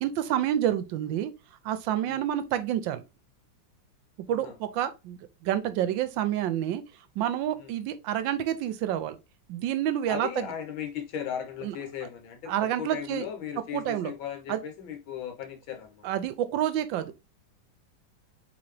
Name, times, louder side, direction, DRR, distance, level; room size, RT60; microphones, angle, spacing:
voice 1, 0.0-1.3 1.6-3.0 4.3-6.8 7.2-9.2 9.5-10.5 11.6-11.7 12.5-13.3 13.7-14.1 14.5-14.6 16.0-17.3, right 11 dB, 80° right, 1.3 m, -28 dB
voice 2, 10.1-12.5 12.8-16.1, left 9 dB, 90° left, 1.8 m, -37 dB
3.9 x 3.6 x 3.2 m
omnidirectional pair, 2.1 m